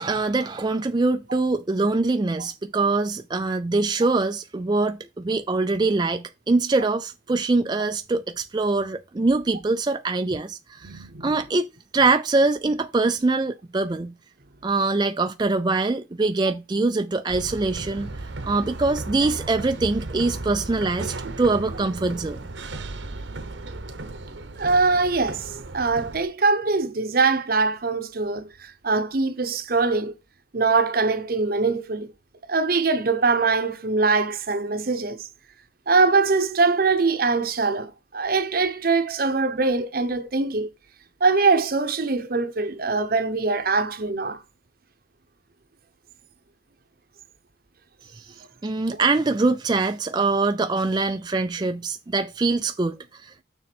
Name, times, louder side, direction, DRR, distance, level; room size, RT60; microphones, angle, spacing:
voice 1, 0.0-11.7 11.9-14.1 14.6-18.1 18.4-22.4 48.2-48.3 48.6-53.4, right 3 dB, 20° right, 0.4 m, -23 dB
voice 2, 10.8-11.3 24.6-30.1 30.5-32.1 32.5-35.2 35.9-40.7 41.2-44.4, right 4 dB, 50° right, 0.8 m, -22 dB
sound 1, 17.3-26.2, right 2 dB, 75° right, 1.0 m, -35 dB
6.7 x 3.8 x 6.0 m
head